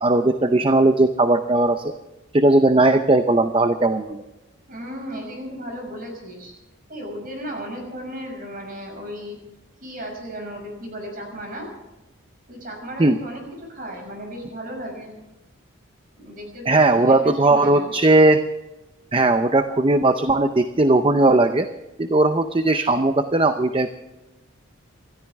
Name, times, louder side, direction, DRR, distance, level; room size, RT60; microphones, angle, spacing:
voice 1, 0.0-1.8 2.3-4.2 13.0-13.2 16.7-18.4 19.1-21.7 22.0-23.9, right 2 dB, 25° right, 8 dB, 0.6 m, -18 dB
voice 2, 4.7-6.5 6.9-9.4 9.8-11.7 12.5-15.2 16.2-17.9, equal, 40° right, 2 dB, 6.1 m, -35 dB
27.5 x 13.5 x 3.6 m, 1.0 s
head